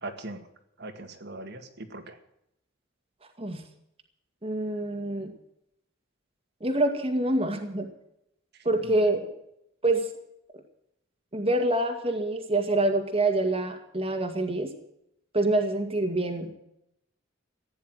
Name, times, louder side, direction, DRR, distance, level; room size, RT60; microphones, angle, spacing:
voice 1, 0.0-0.5 0.8-2.2 8.8-9.0, right 2 dB, 55° right, 7 dB, 2.1 m, -40 dB
voice 2, 4.4-5.3 6.6-7.9 8.7-9.3 9.8-10.0 11.3-14.7 15.3-16.6, right 2 dB, 30° right, 4 dB, 2.1 m, -26 dB
15.5 x 10.5 x 7.8 m, 0.78 s
head